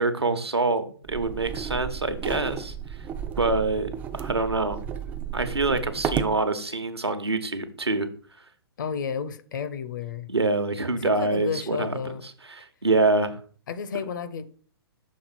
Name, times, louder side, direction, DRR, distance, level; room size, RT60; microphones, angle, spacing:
voice 1, 0.0-2.7 3.4-4.8 5.3-8.1 10.3-12.1 12.5-13.4, right 3 dB, 80° right, 1.0 m, -25 dB
sound 1, 1.1-6.4, right 8 dB, 10° right, 0.3 m, -33 dB
voice 2, 8.8-10.3 11.0-12.2 13.7-14.5, left 6 dB, 50° left, 0.7 m, -32 dB
6.4 x 3.9 x 5.9 m
figure-of-eight pair, 120°, 13 cm